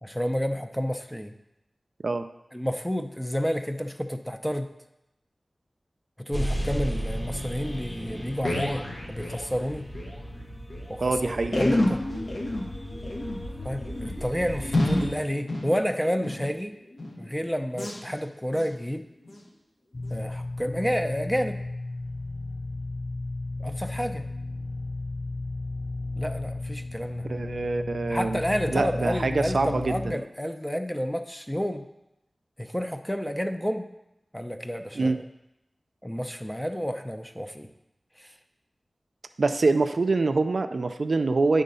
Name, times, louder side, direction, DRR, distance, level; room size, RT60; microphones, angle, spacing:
voice 1, 0.0-1.3 2.5-4.7 6.2-9.9 10.9-11.3 11.6-12.0 13.6-16.7 17.2-19.1 20.1-21.6 23.6-24.2 26.2-27.3 28.1-31.8 32.6-33.9 34.3-35.2 36.0-37.7 38.2-38.3, equal, 5° left, 7 dB, 0.6 m, -30 dB
sound 1, 6.3-15.1, equal, 30° left, 1.5 m, -35 dB
sound 2, 8.0-10.2 10.4-10.5 10.7-10.8 11.4-16.5 16.9-17.3 17.7-18.0 18.5-18.7 19.2-19.4 20.0-20.1, left 1 dB, 75° left, 1.3 m, -30 dB
voice 2, 11.0-11.6 27.3-28.4 28.7-30.1 34.9-35.2 39.4-41.6, right 3 dB, 75° right, 8 dB, 0.4 m, -25 dB
sound 3, 19.9-30.2, left 2 dB, 55° left, 0.4 m, -34 dB
9.2 x 3.8 x 5.4 m, 0.90 s
cardioid pair, 45°, 0 cm